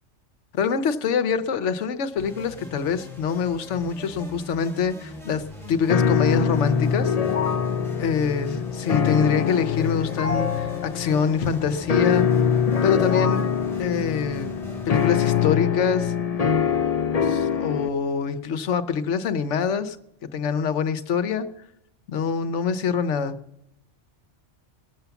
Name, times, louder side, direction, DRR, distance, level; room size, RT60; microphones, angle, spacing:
voice 1, 0.5-7.1 8.0-12.3 12.8-13.5 13.8-14.5 14.9-16.1 17.2-20.0 20.3-21.5 22.1-23.4, left 6 dB, 75° left, 12 dB, 1.1 m, -25 dB
sound 1, 2.2-15.1, left 1 dB, ahead, 4.2 m, -41 dB
sound 2, 5.9-17.9, left 7 dB, 40° left, 0.7 m, -24 dB
19.5 x 7.0 x 6.9 m, 0.81 s
omnidirectional pair, 1.3 m